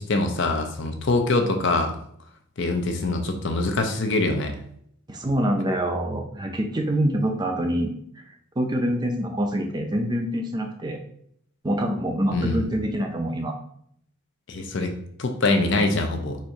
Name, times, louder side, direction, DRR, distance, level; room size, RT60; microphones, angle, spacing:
voice 1, 0.0-2.0 2.6-4.5 12.3-12.6 14.5-14.9 15.2-16.4, left 2 dB, 55° left, 5 dB, 0.6 m, -24 dB
voice 2, 5.1-8.3 8.6-11.0 11.6-13.6, equal, 20° right, 3 dB, 0.4 m, -25 dB
4.3 x 2.6 x 4.6 m, 0.68 s
head